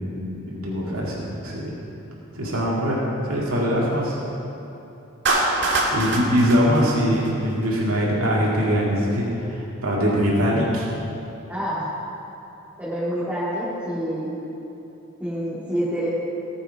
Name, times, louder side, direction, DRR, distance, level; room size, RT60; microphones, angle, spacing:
voice 1, 0.0-1.7 2.3-4.2 5.9-10.9, equal, 80° right, -5 dB, 2.2 m, -22 dB
Clapping, 5.3-7.7, right 2 dB, 55° right, 1.6 m, -23 dB
voice 2, 11.5-11.9 12.8-14.4 15.2-16.1, equal, 10° right, -11 dB, 2.2 m, -27 dB
18.0 x 7.0 x 4.6 m, 2.9 s
head